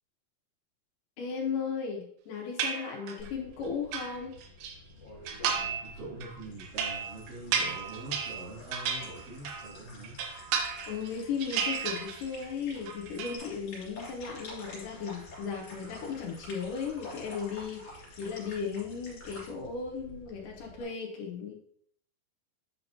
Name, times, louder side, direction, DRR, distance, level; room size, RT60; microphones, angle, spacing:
voice 1, 1.2-4.4 10.6-21.5, left 6 dB, 75° left, 0 dB, 2.0 m, -36 dB
sound 1, 2.6-3.3 3.7-4.7 5.3-5.9 6.2-9.7 10.0-11.1 11.4-12.5 12.7-13.4, right 7 dB, 85° right, 3.1 m, -33 dB
sound 2, 3.2-20.8, left 2 dB, 40° left, 3.3 m, -49 dB
voice 2, 5.8-10.2, right 2 dB, 55° right, -7 dB, 4.6 m, -44 dB
8.8 x 5.7 x 2.8 m, 0.64 s
omnidirectional pair, 4.8 m